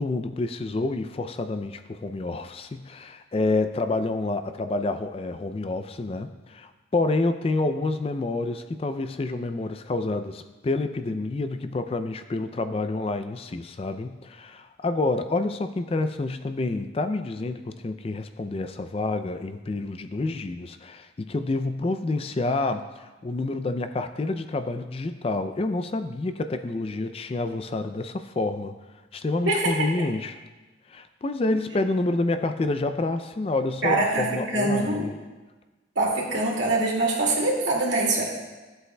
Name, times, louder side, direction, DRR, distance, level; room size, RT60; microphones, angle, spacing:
voice 1, 0.0-28.7 29.1-30.4 30.9-35.1, left 2 dB, 30° left, 9 dB, 0.3 m, -28 dB
voice 2, 29.5-29.9 33.8-35.1 36.0-38.2, right 2 dB, 75° right, -3 dB, 2.2 m, -24 dB
14.5 x 7.9 x 2.2 m, 1.2 s
head